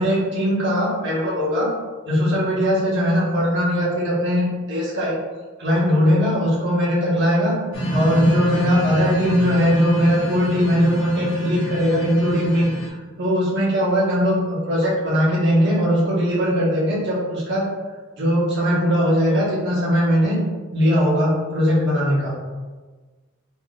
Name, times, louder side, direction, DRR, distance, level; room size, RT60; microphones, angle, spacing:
voice 1, 0.0-1.7 2.0-5.2 5.6-7.6 7.9-17.7 18.1-20.4 20.7-22.3, equal, 55° right, -7 dB, 1.2 m, -20 dB
sound 1, 7.7-12.9, equal, 55° left, 0.9 m, -26 dB
3.9 x 3.1 x 2.3 m, 1.4 s
head